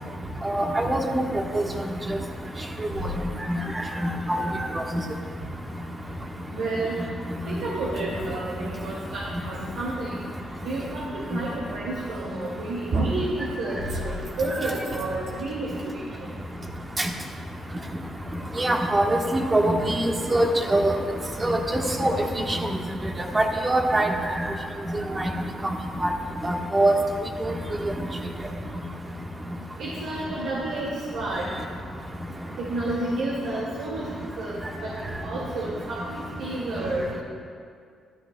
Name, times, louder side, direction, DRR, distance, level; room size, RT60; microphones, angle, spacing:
voice 1, 0.4-1.2 1.5-1.6 3.5-3.6 4.0-4.7 17.0-17.1 18.6-19.1 19.3-20.0 20.3-20.9 21.4-22.2 22.5-22.6 23.3-24.1 25.2-25.3 26.0-26.1 26.4-26.9, right 1 dB, 25° right, 1 dB, 1.4 m, -22 dB
voice 2, 6.5-7.0 7.5-10.2 10.6-11.0 11.3-16.0 29.8-31.5 32.6-34.1 34.4-34.6 34.8-34.9 35.2-37.2, right 2 dB, 85° right, -6 dB, 2.1 m, -30 dB
sound 1, 12.1-12.5 12.9-13.3 13.9-15.3, right 3 dB, 70° right, 1.8 m, -31 dB
13.0 x 12.0 x 2.3 m, 2.2 s
cardioid pair, 80°, 0 cm